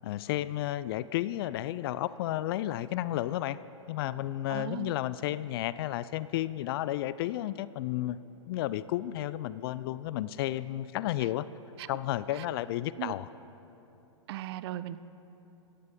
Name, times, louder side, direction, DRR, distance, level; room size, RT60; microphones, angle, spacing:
voice 1, 0.0-3.6 3.9-8.2 8.5-11.5 11.9-13.3, left 14 dB, 50° left, 17 dB, 0.4 m, -32 dB
voice 2, 4.5-4.9 11.8-11.9 12.3-12.4 13.0-13.1 14.3-15.0, right 14 dB, 50° right, 15 dB, 0.5 m, -37 dB
17.0 x 15.0 x 3.8 m, 3.0 s
hypercardioid pair, 110°, 16 cm